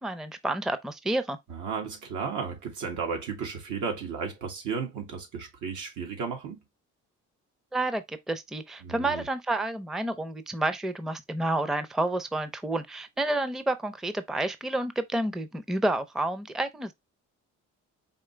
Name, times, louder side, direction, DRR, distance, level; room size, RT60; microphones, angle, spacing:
voice 1, 0.0-1.4 7.7-16.9, right 2 dB, ahead, 0.5 m, -30 dB
voice 2, 1.5-6.6 8.8-9.2, right 5 dB, 85° right, 1.9 m, -34 dB
4.9 x 3.0 x 3.2 m
cardioid pair, 90°, 30 cm